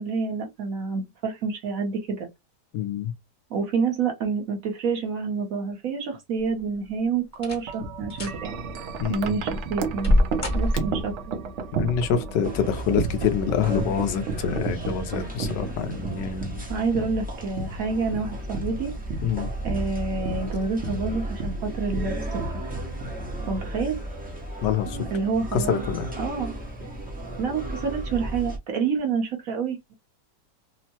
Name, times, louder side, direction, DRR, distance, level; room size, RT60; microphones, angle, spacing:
voice 1, 0.0-2.3 3.5-8.5 9.1-10.1 10.5-11.3 16.5-18.9 19.6-22.4 23.4-24.0 24.9-25.8 26.2-26.6 27.4-29.9, right 5 dB, 60° right, 1.1 m, -28 dB
voice 2, 2.7-3.1 9.0-9.3 11.7-16.6 19.2-19.5 24.6-25.0 25.5-26.1, left 8 dB, 90° left, 1.3 m, -26 dB
sound 1, 6.4-6.8 7.3-7.8 8.1-8.4 9.0-11.2 12.4-13.0 13.4-13.5 14.3-14.5 14.8-14.9, left 1 dB, 30° left, 0.8 m, -26 dB
Wind chime, 7.7-23.8, right 4 dB, 80° right, 0.6 m, -33 dB
sound 2, 12.4-28.6, right 1 dB, 10° right, 0.5 m, -34 dB
3.5 x 2.1 x 2.7 m
omnidirectional pair, 1.9 m